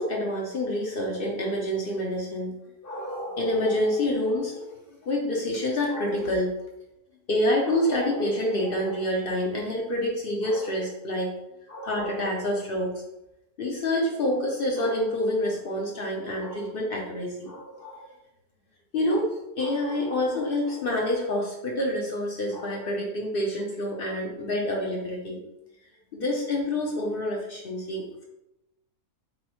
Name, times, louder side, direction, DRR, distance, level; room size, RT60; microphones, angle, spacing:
voice 1, 0.0-2.6 2.8-6.6 7.3-11.3 11.7-13.0 13.6-18.1 18.9-19.3 19.6-25.4 26.1-28.2, left 1 dB, 55° left, -1 dB, 0.7 m, -27 dB
5.3 x 2.0 x 2.9 m, 0.90 s
omnidirectional pair, 1.5 m